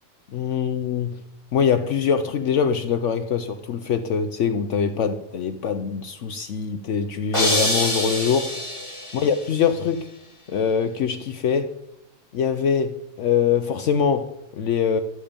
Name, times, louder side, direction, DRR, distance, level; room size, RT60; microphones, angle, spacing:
voice 1, 0.3-1.2 1.5-8.5 9.1-10.1 10.5-11.7 12.3-15.0, left 7 dB, 65° left, 9 dB, 0.9 m, -23 dB
sound 1, 7.3-9.4, left 1 dB, 20° left, 2.4 m, -25 dB
12.5 x 8.6 x 5.1 m, 0.88 s
omnidirectional pair, 1.4 m